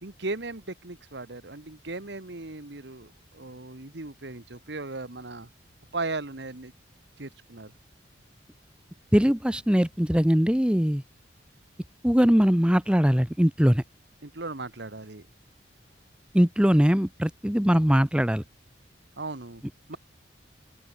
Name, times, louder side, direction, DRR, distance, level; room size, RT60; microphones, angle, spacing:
voice 1, 0.0-5.5 5.9-6.7 7.2-7.7 14.2-15.2 19.2-19.6 19.9-20.0, right 3 dB, 65° right, 1.5 m, -37 dB
voice 2, 9.1-11.0 12.0-13.8 16.3-18.4, equal, 5° right, 0.9 m, -21 dB
open air
head